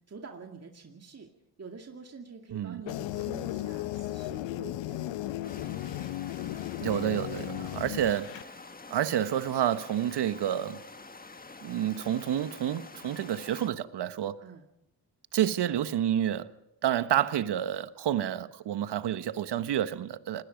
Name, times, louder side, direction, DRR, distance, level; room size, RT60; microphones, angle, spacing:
voice 1, 0.1-1.3 1.6-6.1 7.3-7.8 14.4-14.6, right 4 dB, 30° right, 2.4 m, -47 dB
sound 1, 2.9-8.4, left 14 dB, 70° left, 1.0 m, -35 dB
sound 2, 5.4-13.7, left 3 dB, 20° left, 1.6 m, -48 dB
voice 2, 6.8-8.4 8.9-10.8 11.6-14.4 15.3-16.5 16.8-20.4, right 10 dB, 55° right, 1.4 m, -29 dB
29.0 x 19.5 x 5.3 m
hypercardioid pair, 55°, 47 cm